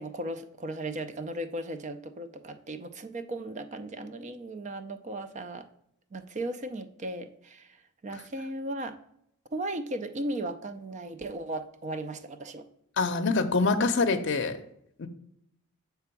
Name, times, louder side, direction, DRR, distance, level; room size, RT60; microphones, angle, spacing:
voice 1, 0.0-5.7 6.1-7.8 8.0-9.0 9.5-12.7, right 1 dB, 35° right, 9 dB, 0.4 m, -36 dB
voice 2, 13.0-14.6 15.0-15.1, left 3 dB, 55° left, 6 dB, 0.6 m, -25 dB
6.8 x 3.4 x 5.8 m, 0.73 s
head